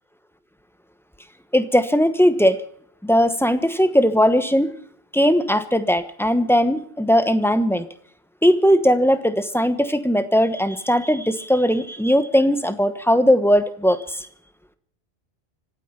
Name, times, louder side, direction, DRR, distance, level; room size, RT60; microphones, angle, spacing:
voice 1, 1.5-2.6 3.0-4.7 5.1-7.9 8.4-14.3, equal, ahead, 10 dB, 1.0 m, -19 dB
26.0 x 9.2 x 5.6 m, 0.63 s
omnidirectional pair, 1.1 m